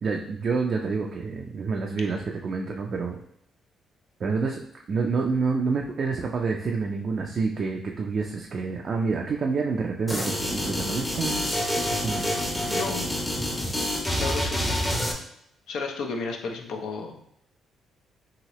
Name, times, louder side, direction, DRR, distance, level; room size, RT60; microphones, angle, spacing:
voice 1, 0.0-3.2 4.2-4.6 4.9-11.4 11.8-12.3, right 4 dB, 50° right, 1 dB, 0.3 m, -28 dB
sound 1, 10.1-15.1, left 1 dB, 10° left, 0.6 m, -27 dB
voice 2, 12.6-13.1 14.2-14.7 15.7-17.4, left 4 dB, 80° left, 2 dB, 0.5 m, -33 dB
2.9 x 2.7 x 2.9 m, 0.74 s
cardioid pair, 90°, 0 cm